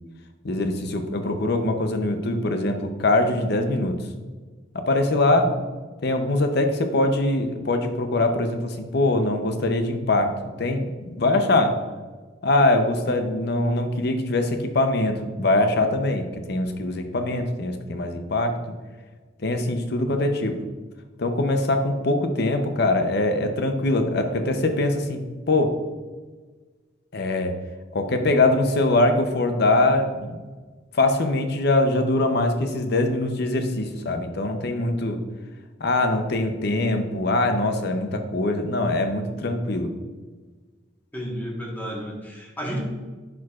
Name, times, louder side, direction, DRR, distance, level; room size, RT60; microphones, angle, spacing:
voice 1, 0.4-4.0 4.7-5.5 6.0-11.8 12.4-18.6 19.4-20.6 21.2-25.8 27.1-27.5 27.9-30.4 30.9-35.2 35.8-39.9, left 2 dB, 60° left, 6 dB, 0.7 m, -23 dB
voice 2, 41.1-42.8, equal, 10° left, -2 dB, 1.3 m, -32 dB
10.5 x 4.7 x 2.4 m, 1.4 s
head